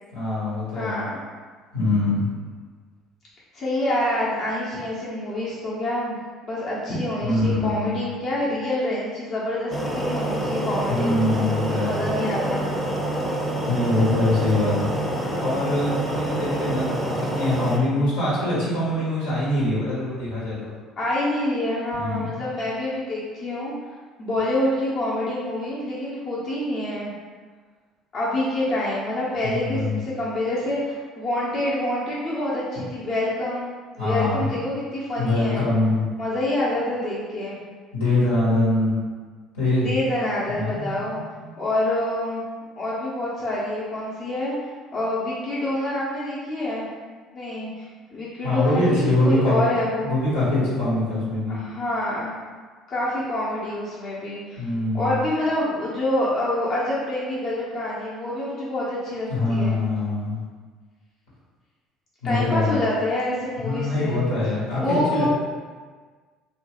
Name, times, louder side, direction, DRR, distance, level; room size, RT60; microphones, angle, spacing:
voice 1, 0.1-1.0 1.7-2.2 7.2-7.9 10.9-12.0 13.7-14.9 15.4-20.7 21.9-22.4 29.4-30.0 34.0-34.5 35.2-36.1 37.9-39.0 39.5-39.9 40.5-41.5 48.4-49.6 50.0-51.6 54.6-55.2 59.3-60.4 62.2-62.8 63.6-65.3, left 2 dB, 85° left, -8 dB, 1.0 m, -23 dB
voice 2, 0.7-1.2 3.5-6.2 6.4-11.1 11.9-12.7 21.0-23.7 24.2-27.1 28.1-35.7 36.2-37.6 39.8-41.2 41.6-42.4 42.8-44.5 44.9-46.9 47.3-50.1 51.5-52.3 52.9-54.6 54.9-59.8 62.2-64.2 64.7-65.3, left 1 dB, 45° left, -7 dB, 0.8 m, -27 dB
sound 1, 9.7-17.8, right 1 dB, 5° left, 0.6 m, -27 dB
2.9 x 2.3 x 2.9 m, 1.5 s
hypercardioid pair, 65°, 0 cm